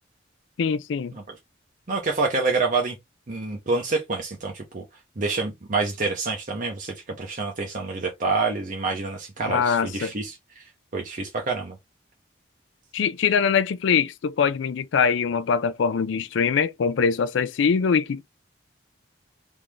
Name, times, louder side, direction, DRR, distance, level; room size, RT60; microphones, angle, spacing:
voice 1, 0.6-1.1 9.5-10.1 12.9-18.2, left 6 dB, 75° left, 0.4 m, -23 dB
voice 2, 1.9-3.0 3.3-4.8 5.2-11.8, right 3 dB, 45° right, 0.8 m, -27 dB
3.5 x 2.6 x 3.0 m
head